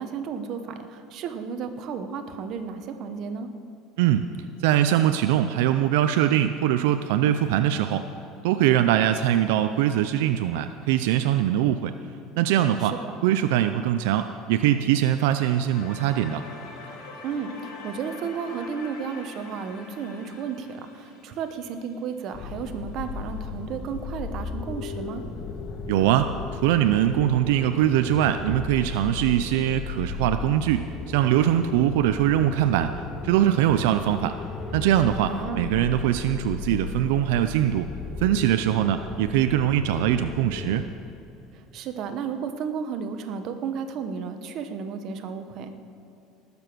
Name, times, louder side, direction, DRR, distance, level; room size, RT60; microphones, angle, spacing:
voice 1, 0.0-3.5 12.8-13.1 17.2-25.2 35.2-35.7 41.5-45.7, right 6 dB, 50° right, 7 dB, 1.0 m, -33 dB
voice 2, 4.0-4.3 4.6-8.0 8.4-11.9 12.4-12.9 13.2-16.4 25.9-32.9 33.2-34.4 34.7-37.9 38.2-40.9, right 11 dB, 85° right, 9 dB, 0.5 m, -22 dB
sound 1, 15.7-22.6, left 3 dB, 65° left, 1.9 m, -44 dB
sound 2, 22.3-40.8, left 4 dB, 30° left, 1.0 m, -35 dB
19.0 x 7.0 x 6.1 m, 2.8 s
cardioid pair, 145°, 0 cm